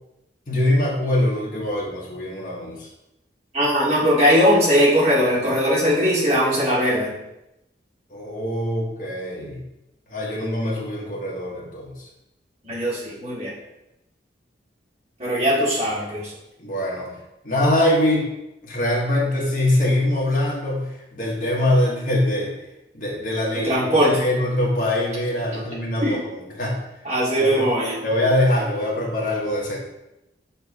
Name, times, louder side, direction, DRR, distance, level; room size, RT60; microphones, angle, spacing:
voice 1, 0.5-2.9 8.1-9.6 10.1-12.1 16.6-17.1 17.4-18.3 18.6-22.5 22.9-26.8 27.4-27.7 28.0-29.8, left 1 dB, 45° left, -3 dB, 1.4 m, -23 dB
voice 2, 3.5-7.1 12.7-13.5 15.2-16.2 23.6-24.1 26.0-26.1 27.0-28.0, equal, 35° right, -7 dB, 2.4 m, -19 dB
6.9 x 3.5 x 4.8 m, 0.89 s
head